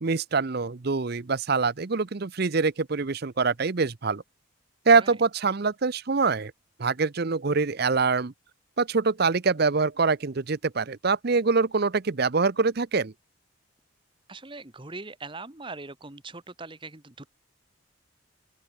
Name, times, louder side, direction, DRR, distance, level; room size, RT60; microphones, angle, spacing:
voice 1, 0.0-4.2 4.9-6.5 6.8-8.3 8.8-13.1, right 4 dB, 50° right, 0.7 m, -24 dB
voice 2, 14.3-17.3, right 3 dB, 25° right, 1.3 m, -41 dB
open air
head